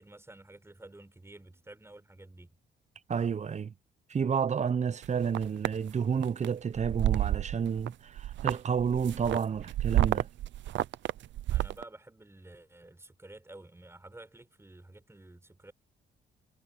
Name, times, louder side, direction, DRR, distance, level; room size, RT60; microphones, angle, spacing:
voice 1, 0.0-2.5 11.5-15.7, right 2 dB, 15° right, 6.8 m, -51 dB
voice 2, 3.1-3.7 4.1-10.3, right 7 dB, 35° right, 0.8 m, -30 dB
sound 1, 5.0-5.7 6.2-6.5 6.8-7.9 8.2-11.8, right 14 dB, 70° right, 0.6 m, -30 dB
cardioid pair, 90°, 20 cm